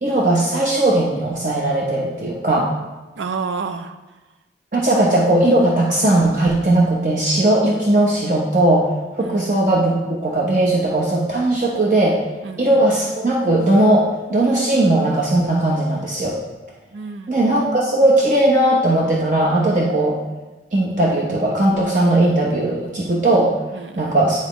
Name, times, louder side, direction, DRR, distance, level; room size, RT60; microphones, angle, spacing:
voice 1, 0.0-2.7 4.7-8.9 9.1-12.2 12.6-16.4 17.3-20.2 20.7-24.4, right 1 dB, 45° right, -3 dB, 0.7 m, -18 dB
voice 2, 3.2-4.0 9.2-9.5 12.4-12.6 16.9-17.3 23.7-24.1, right 5 dB, 90° right, 8 dB, 0.5 m, -29 dB
9.7 x 4.1 x 3.1 m, 1.1 s
head